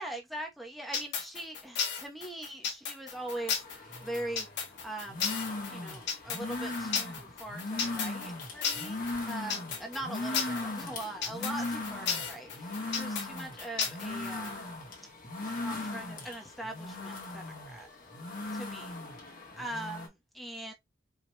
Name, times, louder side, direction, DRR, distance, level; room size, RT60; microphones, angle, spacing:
voice 1, 0.0-4.5 4.8-5.3 5.7-14.6 15.3-17.9 18.5-19.0 19.6-20.7, right 1 dB, ahead, 0.9 m, -41 dB
sound 1, 0.9-14.5, left 6 dB, 65° left, 1.1 m, -33 dB
sound 2, 3.1-20.1, left 2 dB, 45° left, 1.3 m, -39 dB
4.8 x 2.9 x 2.2 m
head